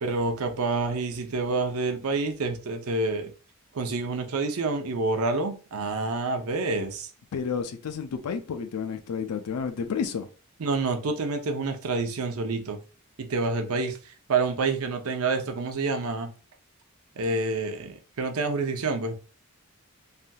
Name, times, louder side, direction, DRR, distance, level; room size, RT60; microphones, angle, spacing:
voice 1, 0.0-3.3 3.7-7.1 10.6-12.8 13.2-16.3 17.2-19.2, right 3 dB, 70° right, 0.6 m, -28 dB
voice 2, 7.3-10.3, left 6 dB, 85° left, 0.4 m, -31 dB
3.3 x 2.6 x 2.2 m
head